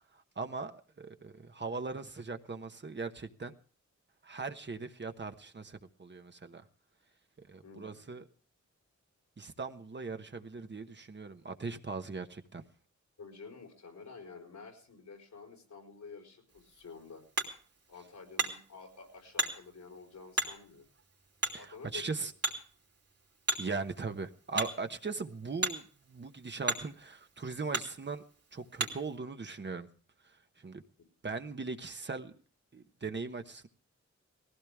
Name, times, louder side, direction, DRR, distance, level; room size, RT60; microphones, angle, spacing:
voice 1, 0.0-3.5 4.2-6.6 7.5-8.2 9.4-12.6 21.5-22.3 23.6-28.2 28.5-29.9 30.2-30.8 31.2-32.3 32.7-33.7, right 4 dB, 40° right, 1.1 m, -39 dB
voice 2, 7.6-8.2 13.2-17.2 17.9-20.9 21.6-22.1, left 4 dB, 85° left, 4.3 m, -50 dB
Hammer, 16.5-29.2, right 3 dB, 60° right, 3.0 m, -39 dB
19.5 x 15.5 x 3.6 m
wide cardioid pair, 125°, 29 cm